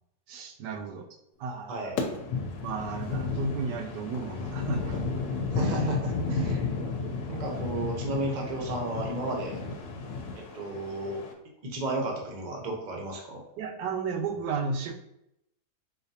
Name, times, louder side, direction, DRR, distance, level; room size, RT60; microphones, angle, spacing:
voice 1, 0.3-1.1 1.4-1.9 2.6-5.0 13.6-14.9, right 4 dB, 90° right, 4 dB, 1.2 m, -33 dB
FX - viento, 2.0-11.3, left 3 dB, 75° left, 1.1 m, -33 dB
voice 2, 5.5-6.6 7.2-9.6 10.3-11.2 11.6-13.4, right 1 dB, 45° right, 0 dB, 0.6 m, -33 dB
4.2 x 2.6 x 2.7 m, 0.80 s
omnidirectional pair, 1.7 m